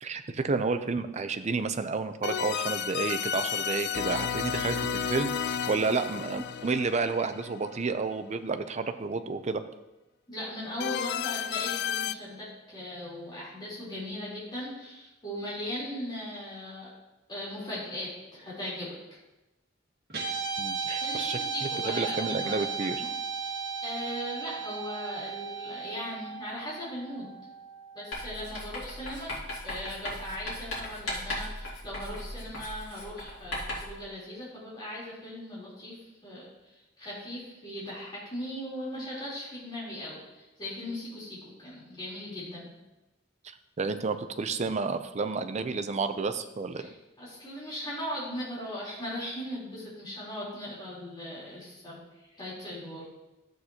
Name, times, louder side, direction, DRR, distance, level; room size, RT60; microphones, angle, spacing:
voice 1, 0.0-9.6 20.6-21.4 21.8-23.0 43.8-46.9, right 4 dB, 35° right, 9 dB, 0.5 m, -30 dB
sound 1, 2.2-8.1 10.8-12.1, left 8 dB, 60° left, 0.3 m, -32 dB
voice 2, 10.3-16.9 17.3-19.0 21.0-23.1 23.4-27.3 27.9-29.4 29.6-42.7 46.8-46.9 47.2-52.0 52.3-53.1, left 1 dB, 25° left, -7 dB, 3.7 m, -38 dB
Guitar, 20.1-28.6, right 5 dB, 55° right, 1.6 m, -35 dB
Writing, 28.1-34.0, left 1 dB, 80° left, 2.5 m, -37 dB
12.0 x 7.9 x 2.9 m, 1.0 s
head